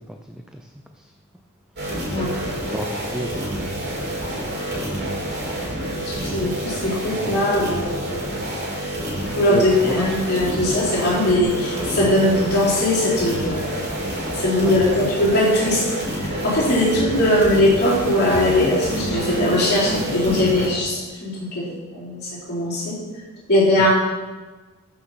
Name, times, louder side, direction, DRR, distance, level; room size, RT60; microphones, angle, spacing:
voice 1, 0.1-0.7 1.0-1.1 2.5-3.8 4.1-4.6 7.1-7.4 9.5-10.2 12.0-12.2 14.6-14.8 23.8-23.9, equal, 5° right, 4 dB, 0.5 m, -32 dB
sound 1, 1.8-20.7, right 1 dB, 50° right, 3.2 m, -28 dB
voice 2, 6.1-7.9 9.4-13.8 14.4-15.8 16.2-22.2 22.5-23.0 23.5-23.9, left 1 dB, 50° left, -8 dB, 4.0 m, -20 dB
sound 2, 9.2-15.5, equal, 70° left, 1.8 m, -36 dB
sound 3, 18.3-20.7, right 1 dB, 25° left, 2.5 m, -31 dB
12.5 x 5.7 x 5.8 m, 1.3 s
head